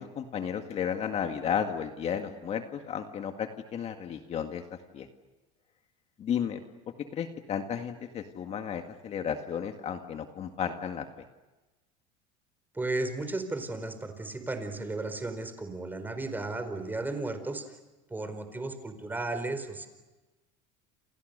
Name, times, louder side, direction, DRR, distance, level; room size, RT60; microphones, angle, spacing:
voice 1, 0.0-5.1 6.2-6.6 7.0-11.1, left 8 dB, 40° left, 6 dB, 2.0 m, -33 dB
voice 2, 12.7-17.8 18.1-19.9, right 2 dB, 10° right, 8 dB, 4.4 m, -34 dB
29.0 x 28.5 x 6.8 m, 1.2 s
supercardioid pair, 125°, 17 cm